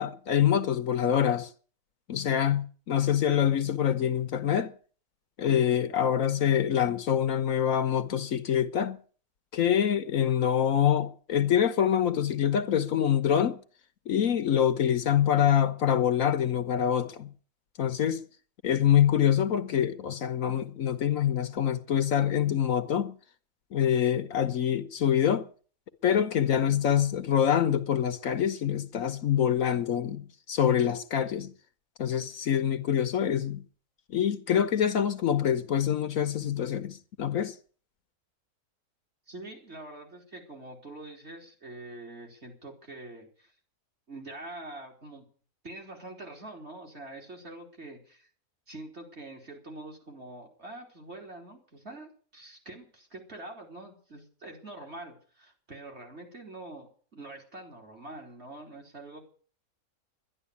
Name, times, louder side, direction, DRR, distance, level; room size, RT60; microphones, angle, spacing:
voice 1, 0.0-1.5 2.1-4.7 5.4-9.0 9.5-13.6 14.1-17.3 17.8-18.2 18.6-23.1 23.7-25.5 26.0-31.5 32.0-33.6 34.1-37.5, left 9 dB, 65° left, 1.3 m, -25 dB
voice 2, 39.3-43.5 44.1-45.2 45.6-48.3 48.7-59.2, right 2 dB, 45° right, 3.8 m, -45 dB
11.5 x 11.0 x 8.4 m
omnidirectional pair, 1.6 m